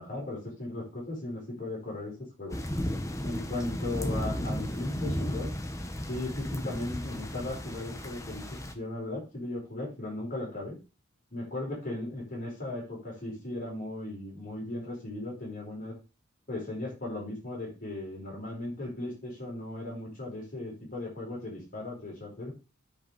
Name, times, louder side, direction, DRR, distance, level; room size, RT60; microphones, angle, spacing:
voice 1, 0.0-2.6 3.2-5.5 6.1-8.4 8.7-10.8 11.3-15.9 16.5-22.5, left 2 dB, 40° left, -3 dB, 5.2 m, -37 dB
sound 1, 2.5-8.7, equal, 15° left, 1.0 m, -34 dB
9.1 x 5.3 x 5.2 m, 0.29 s
head